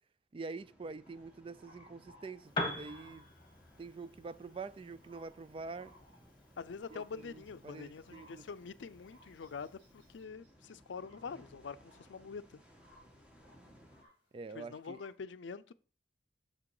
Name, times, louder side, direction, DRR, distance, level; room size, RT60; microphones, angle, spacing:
voice 1, 0.3-3.2 3.8-5.9 6.9-8.4 14.3-15.0, right 4 dB, 30° right, 0.3 m, -46 dB
sound 1, 0.6-14.0, equal, 5° right, 1.3 m, -62 dB
sound 2, 1.0-3.8 4.5-4.7 5.0-5.4 5.7-12.3 12.6-14.2 14.6-15.2, left 1 dB, 70° right, 3.4 m, -63 dB
Piano, 2.4-10.2, left 2 dB, 25° left, 1.4 m, -46 dB
voice 2, 6.6-12.6 14.5-15.7, left 5 dB, 80° left, 0.5 m, -45 dB
6.6 x 6.1 x 4.8 m
head